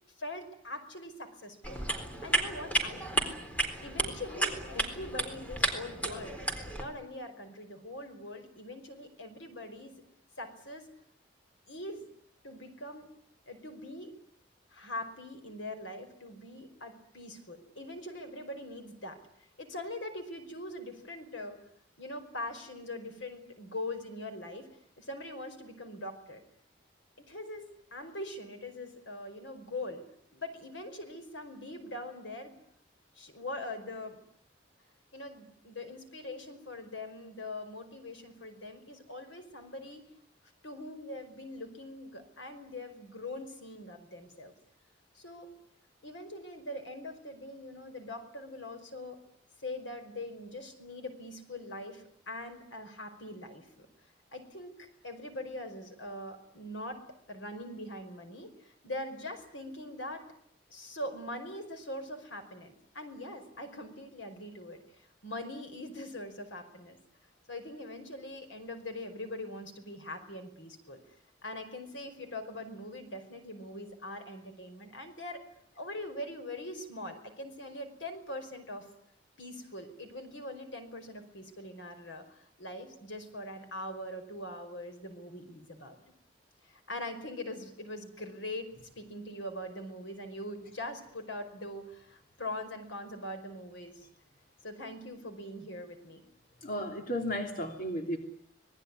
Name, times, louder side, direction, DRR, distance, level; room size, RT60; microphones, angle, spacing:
voice 1, 0.2-1.8 2.2-3.3 3.8-6.4 6.8-10.0 10.4-10.9 11.7-12.1 12.4-13.1 13.5-14.2 14.7-21.6 22.0-24.7 25.0-26.4 27.2-30.0 30.3-32.6 33.1-34.2 35.1-40.0 40.6-44.5 45.1-45.5 46.0-49.2 49.6-53.9 54.3-60.2 60.7-67.0 67.5-71.0 71.4-75.4 75.8-78.9 79.4-86.0 86.6-94.1 94.6-96.2, left 1 dB, 80° left, 7 dB, 5.1 m, -42 dB
sound 1, 1.6-6.8, right 2 dB, 10° left, 4.0 m, -33 dB
voice 2, 96.6-98.2, equal, 50° left, 4 dB, 3.1 m, -34 dB
26.0 x 20.0 x 9.7 m, 0.69 s
head